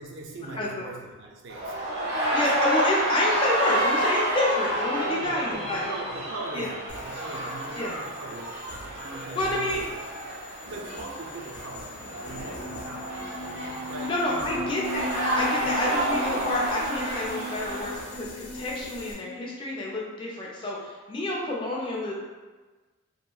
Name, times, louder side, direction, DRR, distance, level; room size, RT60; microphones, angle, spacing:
voice 1, 0.0-1.8 4.9-9.9 10.7-13.3 13.8-14.7 15.5-15.8, right 2 dB, 60° right, 0 dB, 0.4 m, -40 dB
voice 2, 0.6-0.9 2.3-5.9 6.5-6.7 7.8-7.9 9.3-9.8 14.0-15.1 15.3-22.1, left 1 dB, 25° left, -3 dB, 0.3 m, -29 dB
sound 1, 1.5-18.1, right 1 dB, 80° right, 1.1 m, -30 dB
sound 2, 6.9-19.1, left 3 dB, 85° left, 0.5 m, -45 dB
sound 3, 11.9-19.5, left 1 dB, 50° left, 0.7 m, -38 dB
2.8 x 2.3 x 2.3 m, 1.3 s
head